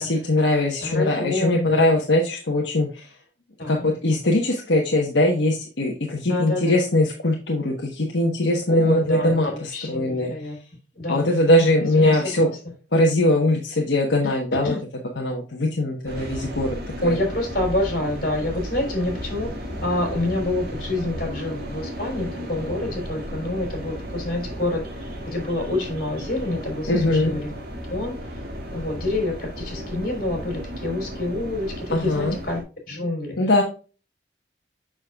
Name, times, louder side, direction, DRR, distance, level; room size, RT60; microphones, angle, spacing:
voice 1, 0.0-3.1 3.7-10.3 11.1-12.5 12.9-14.8 15.2-16.7 17.0-17.2 26.9-27.3 31.9-32.4 33.4-33.6, left 1 dB, 75° left, 0 dB, 1.2 m, -21 dB
voice 2, 0.8-2.0 3.6-3.9 6.3-6.8 8.7-10.6 11.0-12.6 14.2-14.3 14.6-14.8 17.0-19.5 19.8-27.5 27.9-28.4 28.7-32.6 32.9-33.4, left 2 dB, 55° left, 1 dB, 3.7 m, -27 dB
sound 1, 16.1-32.6, equal, 60° right, 2.3 m, -34 dB
7.4 x 6.3 x 2.4 m, 0.35 s
head